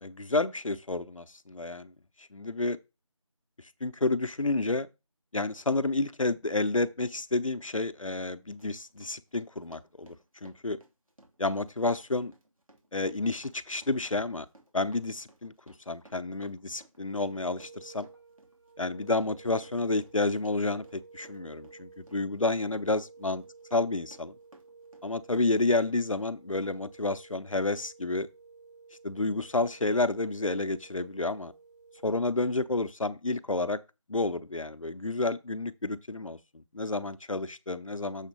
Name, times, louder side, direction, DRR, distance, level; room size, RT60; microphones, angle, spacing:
voice 1, 0.0-1.9 2.2-2.8 3.8-4.9 5.3-10.2 10.4-10.8 11.4-12.3 12.9-14.5 14.7-15.5 15.9-18.1 18.8-23.4 23.7-24.3 25.0-28.3 29.0-31.5 32.0-33.8 34.1-38.3, left 2 dB, 70° left, 0.8 m, -30 dB
Run, 7.6-7.7 8.2-25.9 26.2-26.8 27.1-27.2, right 1 dB, 80° right, 2.8 m, -58 dB
sound 1, 17.2-32.4, right 4 dB, 55° right, 2.6 m, -53 dB
7.3 x 4.4 x 5.4 m
figure-of-eight pair, 175°, 17 cm